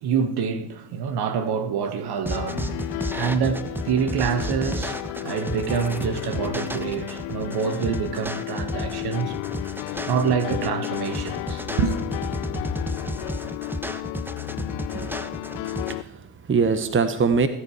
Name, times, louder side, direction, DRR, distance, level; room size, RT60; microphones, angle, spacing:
voice 1, 0.0-2.7 3.2-9.4 10.1-12.0, right 6 dB, 55° right, 1.8 m, -26 dB
Piano, 2.3-16.0, left 20 dB, 65° left, 0.8 m, -33 dB
sound 1, 2.3-15.9, equal, 5° right, 1.1 m, -32 dB
voice 2, 14.9-15.3 15.8-17.5, right 5 dB, 25° right, 1.3 m, -23 dB
18.5 x 10.0 x 5.0 m
hypercardioid pair, 70°, 45 cm